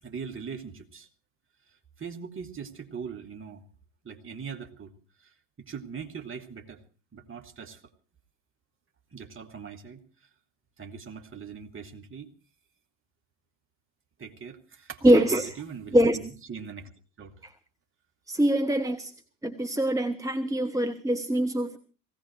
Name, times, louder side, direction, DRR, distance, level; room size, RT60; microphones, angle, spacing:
voice 1, 0.0-1.1 2.0-3.6 4.0-4.9 5.2-6.8 7.1-7.8 9.1-10.3 10.8-12.3 14.2-16.9 17.2-17.3, right 6 dB, 25° right, 4 dB, 2.5 m, -41 dB
voice 2, 15.0-15.5 15.9-16.2 17.4-17.5 18.3-19.1 19.4-21.8, right 1 dB, 5° right, 7 dB, 1.1 m, -23 dB
18.0 x 16.5 x 4.5 m, 0.37 s
figure-of-eight pair, 65°, 48 cm